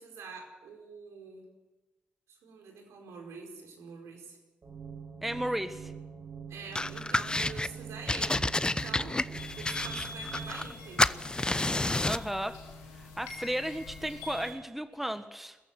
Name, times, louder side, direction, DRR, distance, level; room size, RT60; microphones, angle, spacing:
voice 1, 0.0-1.5 2.3-4.4 6.5-9.3 9.5-11.2, right 5 dB, 75° right, 2 dB, 4.8 m, -46 dB
sound 1, 4.6-10.6, right 6 dB, 45° right, 5.5 m, -44 dB
voice 2, 5.2-5.9 12.0-12.6 13.0-15.6, equal, 5° right, 10 dB, 1.5 m, -34 dB
sound 2, 6.8-7.7 8.1-10.7 11.0-12.3, left 2 dB, 20° left, 0.7 m, -30 dB
sound 3, 9.4-14.5, left 2 dB, 85° left, 3.2 m, -44 dB
21.5 x 14.5 x 9.2 m, 1.1 s
hypercardioid pair, 40°, 5 cm